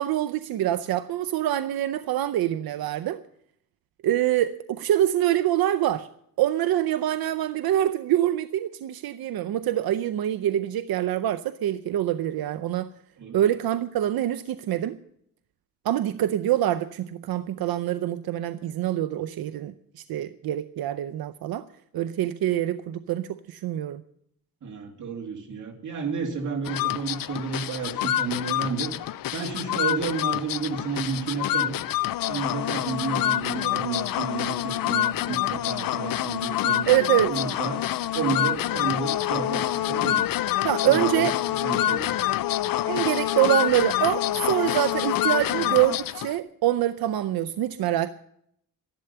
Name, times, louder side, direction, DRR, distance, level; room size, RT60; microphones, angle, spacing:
voice 1, 0.0-3.2 4.0-6.1 6.4-12.9 13.3-15.0 15.8-21.7 21.9-24.0 36.9-37.3 40.6-41.3 42.9-48.1, right 12 dB, 90° right, 10 dB, 0.6 m, -25 dB
voice 2, 24.6-28.9 29.3-31.8 32.3-36.8 37.3-37.9 38.1-40.3 40.8-41.3 41.6-42.2, right 5 dB, 55° right, 2 dB, 2.5 m, -31 dB
Ave Paulista, 26.6-46.4, left 13 dB, 70° left, 0.5 m, -27 dB
12.5 x 11.5 x 6.8 m, 0.70 s
wide cardioid pair, 180°, 36 cm